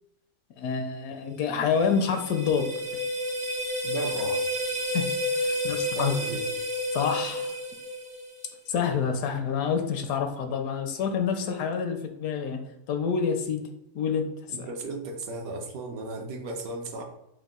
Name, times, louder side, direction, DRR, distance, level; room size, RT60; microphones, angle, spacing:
voice 1, 0.6-3.0 4.9-6.1 6.9-7.5 8.7-12.6 12.9-13.6 13.9-14.3 14.6-14.7, left 6 dB, 75° left, 5 dB, 1.0 m, -28 dB
sound 1, 1.5-8.6, left 1 dB, 10° right, 0.4 m, -31 dB
voice 2, 3.8-4.5 5.9-6.5 14.5-17.0, right 2 dB, 70° right, 2 dB, 1.0 m, -35 dB
4.8 x 2.1 x 3.6 m, 0.86 s
omnidirectional pair, 1.6 m